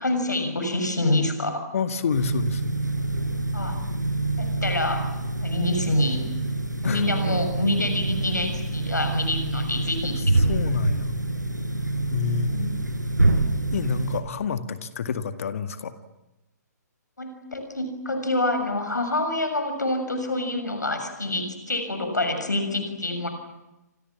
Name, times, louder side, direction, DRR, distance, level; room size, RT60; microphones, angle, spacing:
voice 1, 0.0-1.6 3.5-3.8 4.4-5.1 5.4-6.2 6.8-10.2 12.5-12.7 17.2-23.3, left 2 dB, 75° left, 6 dB, 6.8 m, -27 dB
voice 2, 1.7-2.7 6.8-7.1 10.4-11.1 12.1-12.5 13.7-15.9, left 6 dB, 50° left, 10 dB, 2.0 m, -28 dB
sound 1, 2.1-14.2, right 2 dB, 85° right, 4.5 m, -26 dB
30.0 x 27.0 x 7.3 m, 0.96 s
figure-of-eight pair, 125°, 10 cm